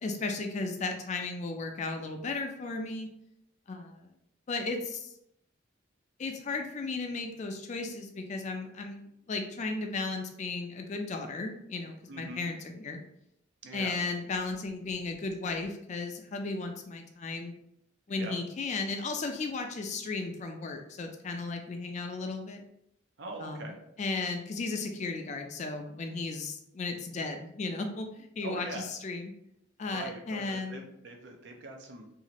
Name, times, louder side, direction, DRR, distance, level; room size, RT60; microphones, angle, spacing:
voice 1, 0.0-3.1 3.7-4.1 4.5-5.1 6.2-13.0 13.7-17.5 18.1-22.6 23.4-23.7 24.0-29.3 29.8-30.9, left 3 dB, 35° left, 4 dB, 0.3 m, -35 dB
voice 2, 12.1-12.5 13.6-14.0 18.1-18.4 23.2-23.8 28.4-28.8 29.9-32.2, right 2 dB, 60° right, 2 dB, 0.5 m, -42 dB
2.7 x 2.4 x 2.9 m, 0.77 s
head